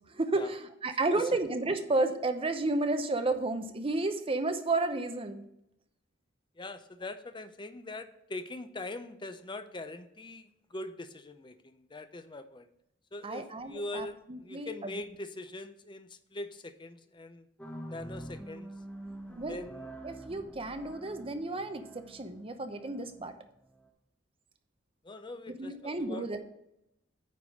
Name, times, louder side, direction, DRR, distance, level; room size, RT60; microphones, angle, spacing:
voice 1, 0.1-5.5 13.2-15.0 19.4-19.6 20.0-23.3 25.5-26.4, right 2 dB, 30° right, 7 dB, 0.8 m, -32 dB
voice 2, 6.6-12.7 13.1-17.5 17.9-18.7 19.5-19.9 25.0-26.4, left 2 dB, 25° left, 9 dB, 0.6 m, -42 dB
sound 1, 17.6-23.9, right 1 dB, 5° left, 1.0 m, -46 dB
9.5 x 3.7 x 6.3 m, 0.82 s
head